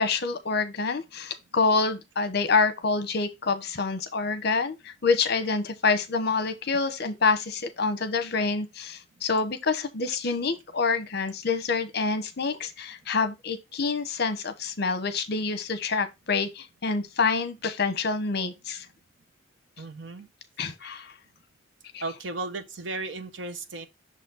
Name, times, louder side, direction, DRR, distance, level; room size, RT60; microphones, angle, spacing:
voice 1, 0.0-18.9 20.6-21.1 21.9-22.0, left 4 dB, 60° left, 0.9 m, -27 dB
voice 2, 19.8-20.3 22.0-23.9, right 3 dB, 70° right, 1.0 m, -35 dB
6.4 x 4.2 x 4.0 m
head